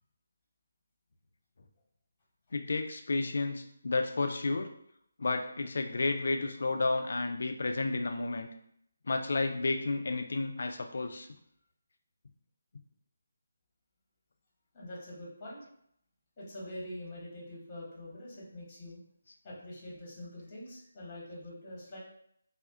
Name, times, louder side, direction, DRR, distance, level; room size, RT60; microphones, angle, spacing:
voice 1, 2.5-4.7 5.2-8.5 9.1-11.3, left 3 dB, 65° left, 5 dB, 0.3 m, -31 dB
voice 2, 14.7-15.6 16.4-19.0 19.4-22.0, left 1 dB, 25° left, -4 dB, 0.9 m, -44 dB
2.3 x 2.0 x 3.6 m, 0.70 s
figure-of-eight pair, 155°, 0 cm